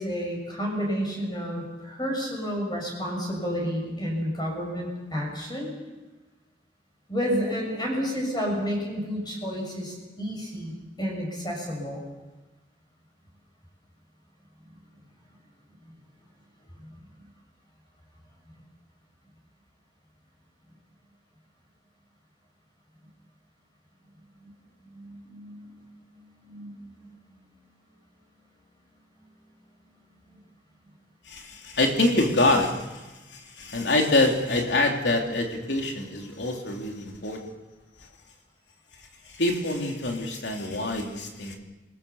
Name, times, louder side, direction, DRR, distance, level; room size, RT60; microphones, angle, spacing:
voice 1, 0.0-5.7 7.1-12.0 16.8-16.9 24.4-24.5 24.9-25.7 26.1-26.7, equal, 25° left, -1 dB, 6.8 m, -31 dB
voice 2, 31.3-37.4 38.0-38.1 39.2-41.6, left 2 dB, 80° left, 2 dB, 3.1 m, -25 dB
27.5 x 20.5 x 7.1 m, 1.1 s
head